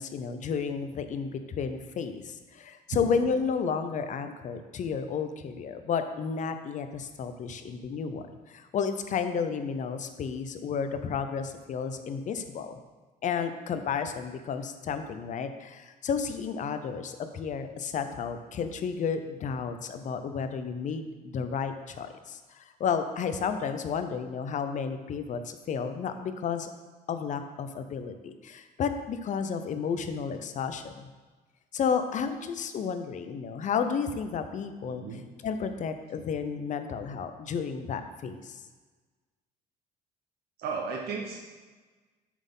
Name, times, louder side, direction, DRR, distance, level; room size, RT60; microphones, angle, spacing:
voice 1, 0.0-12.8 13.2-26.7 27.1-31.1 31.7-38.6, left 6 dB, 45° left, 9 dB, 0.7 m, -32 dB
voice 2, 34.9-35.2 40.6-41.4, right 5 dB, 70° right, 0 dB, 1.0 m, -34 dB
7.2 x 4.3 x 5.4 m, 1.3 s
cardioid pair, 110°, 17 cm